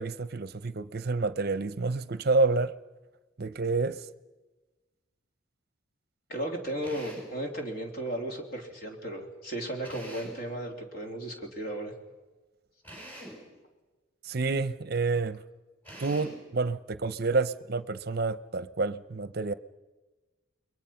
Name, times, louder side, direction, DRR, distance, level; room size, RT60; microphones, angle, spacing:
voice 1, 0.0-2.7 3.4-4.1 14.2-15.4 16.0-19.5, right 3 dB, 50° right, 0.7 m, -29 dB
voice 2, 6.3-11.9, right 1 dB, 50° left, 3.1 m, -35 dB
Drill, 6.8-7.4 9.8-10.5 12.8-13.5 15.8-16.5, equal, 10° left, 6.0 m, -45 dB
29.0 x 22.5 x 5.8 m
head